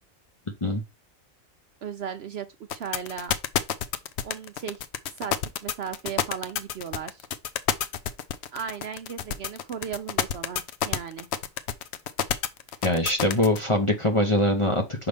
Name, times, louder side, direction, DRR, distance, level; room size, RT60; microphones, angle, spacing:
voice 1, 1.8-3.4 4.2-5.4 5.6-7.3 8.5-11.3 12.7-12.8, right 7 dB, 60° right, 0.7 m, -36 dB
sound 1, 2.7-13.6, left 9 dB, 65° left, 0.8 m, -28 dB
voice 2, 12.8-15.1, left 1 dB, 30° left, 0.7 m, -23 dB
5.8 x 5.3 x 3.3 m
omnidirectional pair, 1.4 m